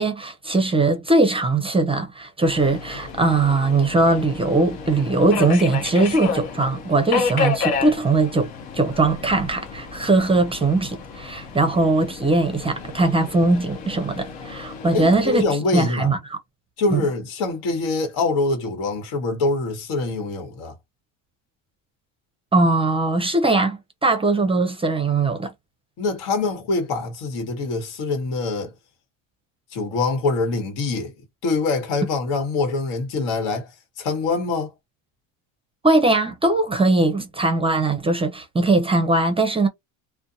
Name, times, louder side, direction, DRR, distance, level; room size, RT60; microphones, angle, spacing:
voice 1, 0.0-15.5 15.7-16.4 16.9-17.0 22.5-25.5 35.8-39.7, right 2 dB, 15° right, 0.5 m, -20 dB
Subway metro underground, 2.4-15.4, left 5 dB, 85° left, 0.9 m, -31 dB
voice 2, 14.9-16.1 16.8-20.7 26.0-28.7 29.7-31.1 31.4-33.7 34.0-34.7, left 3 dB, 65° left, 1.3 m, -24 dB
2.5 x 2.2 x 2.6 m
supercardioid pair, 105°, 40 cm